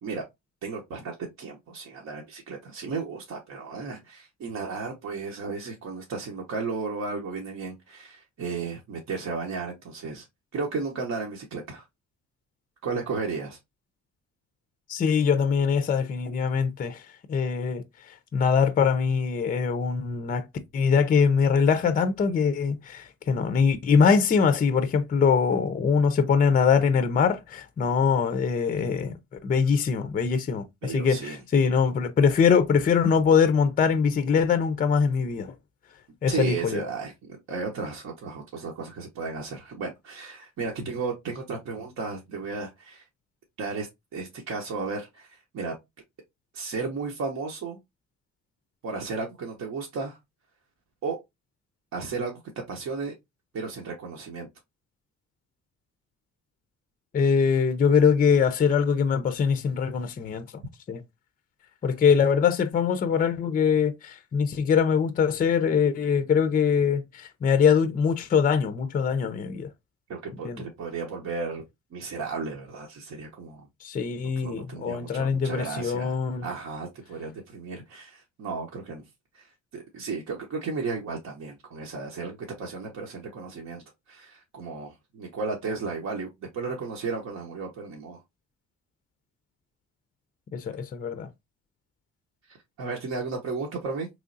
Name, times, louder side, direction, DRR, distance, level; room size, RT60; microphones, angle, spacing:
voice 1, 0.6-10.3 10.5-11.9 12.8-13.6 30.8-31.4 36.3-43.1 43.6-45.7 46.5-47.8 48.8-50.2 51.0-51.2 51.9-53.1 53.5-54.5 70.1-71.6 71.9-73.7 74.4-76.2 76.4-79.0 79.3-88.2 92.5-94.1, right 4 dB, 60° right, 0.8 m, -34 dB
voice 2, 14.9-17.0 17.3-17.8 18.3-20.5 20.7-29.2 29.4-35.5 36.2-36.8 57.1-60.4 60.9-61.0 61.8-69.7 70.4-70.6 73.8-76.5 90.5-91.3, left 6 dB, 30° left, 0.4 m, -23 dB
3.6 x 3.1 x 2.5 m
cardioid pair, 90°, 30 cm